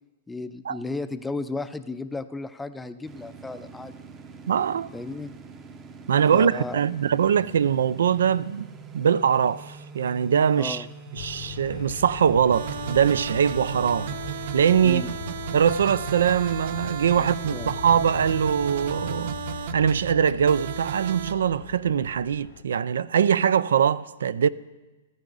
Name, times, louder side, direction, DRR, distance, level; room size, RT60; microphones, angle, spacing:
voice 1, 0.3-4.0 4.9-5.3 6.3-6.8 10.6-10.9 14.8-15.1 17.2-17.7, left 3 dB, 5° left, 0.4 m, -34 dB
sound 1, 3.0-14.6, right 4 dB, 20° right, 0.7 m, -45 dB
voice 2, 4.5-4.9 6.1-8.7 8.9-10.8 11.2-14.1 14.5-15.0 15.5-19.4 19.7-24.5, right 8 dB, 85° right, 0.4 m, -22 dB
sound 2, 11.2-22.6, left 10 dB, 55° left, 0.7 m, -39 dB
sound 3, 12.5-21.3, right 8 dB, 60° right, 0.7 m, -34 dB
14.5 x 13.5 x 3.9 m
hypercardioid pair, 155°, 0 cm